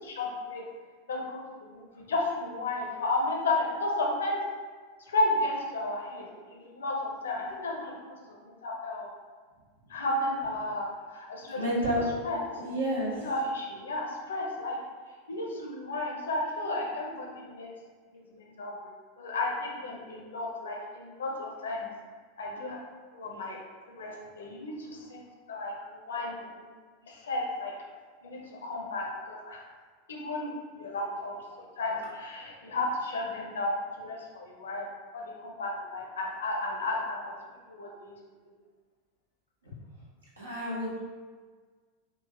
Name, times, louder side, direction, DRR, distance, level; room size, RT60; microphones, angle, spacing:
voice 1, 0.1-0.6 1.1-4.4 5.1-7.9 8.4-9.1 9.9-11.6 12.2-12.4 13.1-14.8 15.3-17.7 18.3-21.9 22.4-22.8 23.1-23.6 23.9-25.2 25.5-25.7 26.1-26.7 27.1-27.8 28.2-29.6 30.1-30.5 30.7-34.9 35.1-37.3 37.7-38.1, left 2 dB, 70° left, 0 dB, 0.6 m, -33 dB
voice 2, 11.5-12.0 12.6-13.3 40.4-41.0, equal, 85° right, -7 dB, 1.1 m, -30 dB
3.8 x 2.4 x 3.4 m, 1.5 s
figure-of-eight pair, 90°, 0 cm